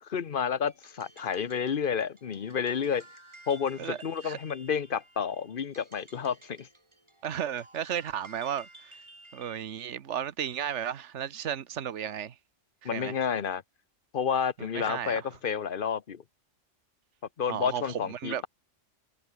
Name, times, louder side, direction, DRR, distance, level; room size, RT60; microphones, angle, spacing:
voice 1, 0.0-3.0 3.5-6.7 12.8-13.6 14.1-16.2 17.4-18.5, left 7 dB, 50° left, 1.0 m, -30 dB
sound 1, 0.7-9.7, right 1 dB, 25° right, 2.9 m, -54 dB
voice 2, 7.2-9.0 9.3-12.4 12.9-13.2 14.6-15.3 17.5-18.4, right 9 dB, 70° right, 1.3 m, -34 dB
omnidirectional pair, 1.2 m